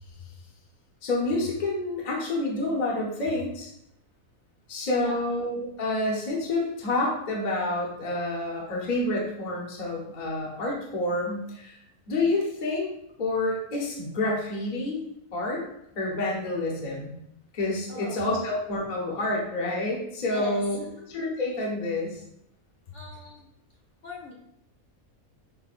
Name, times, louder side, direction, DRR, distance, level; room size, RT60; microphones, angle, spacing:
voice 1, 1.0-3.7 4.7-11.8 12.1-12.9 13.2-15.0 15.3-15.6 15.9-17.1 17.5-20.8 21.1-22.2 23.2-23.3, left 2 dB, 35° left, -3 dB, 0.8 m, -28 dB
voice 2, 5.0-5.3 17.9-18.4 20.3-21.1 22.9-23.5 24.0-24.3, left 2 dB, 60° left, -4 dB, 1.0 m, -41 dB
5.8 x 2.3 x 2.5 m, 0.78 s
omnidirectional pair, 1.5 m